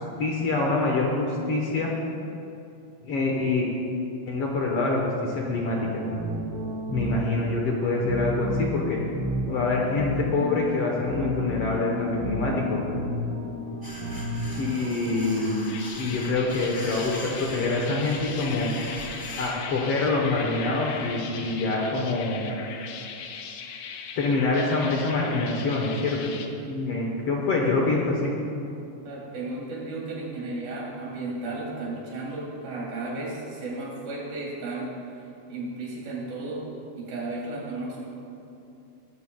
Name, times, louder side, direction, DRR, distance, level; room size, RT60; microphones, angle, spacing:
voice 1, 0.2-1.9 3.0-3.7 4.3-6.0 6.9-9.0 9.5-12.8 14.0-14.1 14.6-15.6 16.0-18.7 19.4-22.4 24.2-26.3 26.7-28.3, left 3 dB, 65° left, -1 dB, 1.5 m, -25 dB
sound 1, 6.0-14.5, equal, 50° right, 3.0 m, -31 dB
sound 2, 13.8-19.5, equal, 5° left, 2.0 m, -41 dB
sound 3, 15.4-26.5, left 6 dB, 90° left, 2.6 m, -39 dB
voice 2, 29.1-34.9 35.5-36.7 36.9-38.1, right 2 dB, 85° right, -4 dB, 4.6 m, -34 dB
18.5 x 13.5 x 2.3 m, 2.7 s
omnidirectional pair, 4.1 m